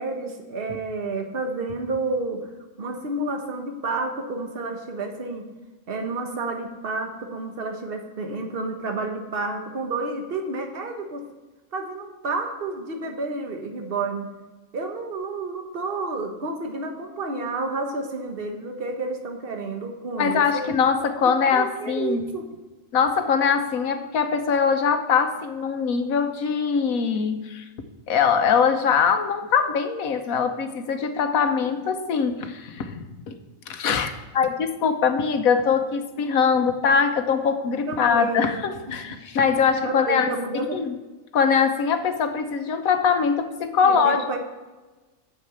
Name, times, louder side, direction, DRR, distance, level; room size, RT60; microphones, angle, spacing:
voice 1, 0.0-2.5 2.8-5.5 5.9-11.2 11.7-14.3 14.7-20.6 21.5-22.5 37.9-38.6 38.9-39.2 39.8-40.8 43.8-44.4, right 3 dB, 45° right, 4 dB, 1.4 m, -30 dB
voice 2, 20.2-22.2 22.9-27.6 28.1-33.3 33.7-40.3 40.7-40.9 41.3-44.2, left 6 dB, 80° left, 7 dB, 1.3 m, -22 dB
8.9 x 6.7 x 8.0 m, 1.2 s
omnidirectional pair, 1.5 m